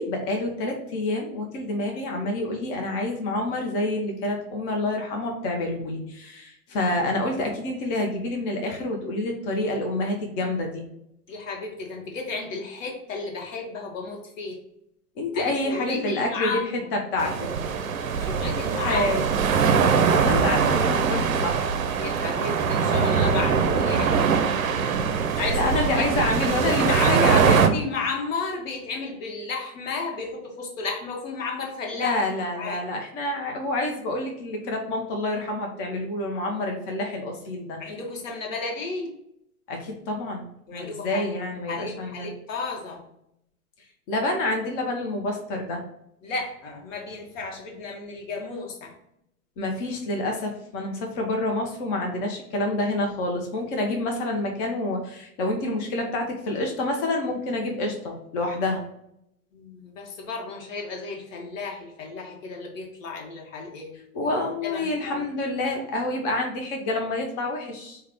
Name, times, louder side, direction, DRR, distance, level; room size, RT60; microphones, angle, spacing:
voice 1, 0.0-10.8 15.2-17.4 18.7-19.2 20.1-21.7 25.5-27.7 31.9-37.8 39.7-42.3 44.1-45.8 49.6-58.8 64.1-68.0, left 2 dB, 35° left, 2 dB, 0.9 m, -28 dB
voice 2, 11.3-14.6 15.3-16.9 18.2-19.2 22.0-24.6 25.4-26.1 26.7-32.2 32.6-32.8 37.8-39.1 40.7-41.3 41.7-43.0 46.2-48.9 59.5-64.0 64.6-65.2, left 4 dB, 60° left, 1 dB, 1.2 m, -33 dB
sound 1, 17.2-27.7, right 6 dB, 65° right, 0.6 m, -22 dB
4.5 x 2.3 x 3.6 m, 0.78 s
figure-of-eight pair, 95°, 44 cm